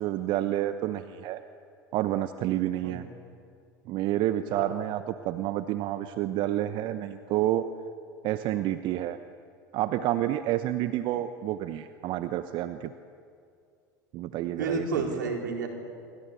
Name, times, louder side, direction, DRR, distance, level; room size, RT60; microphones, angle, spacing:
voice 1, 0.0-1.4 1.9-3.0 3.9-7.7 8.2-9.2 9.7-12.9 14.1-15.2, right 13 dB, 50° right, 11 dB, 1.0 m, -29 dB
voice 2, 14.6-15.7, right 4 dB, 85° right, 2 dB, 4.4 m, -30 dB
27.0 x 24.5 x 8.5 m, 2.4 s
hypercardioid pair, 80°, 10 cm